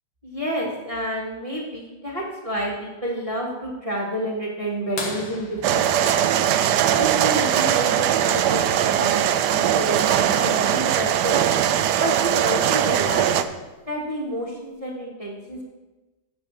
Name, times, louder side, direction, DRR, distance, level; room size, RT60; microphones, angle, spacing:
voice 1, 0.2-6.5 7.0-11.4 11.9-13.4 13.9-15.6, equal, 20° right, -3 dB, 1.4 m, -30 dB
sound 1, 5.0-7.4 9.3-9.4 11.7-11.8 13.5-13.8 14.5-14.6, left 3 dB, 80° left, 2.2 m, -36 dB
sound 2, 5.6-13.4, right 10 dB, 75° right, 1.0 m, -20 dB
15.0 x 7.4 x 3.2 m, 1.1 s
omnidirectional pair, 2.2 m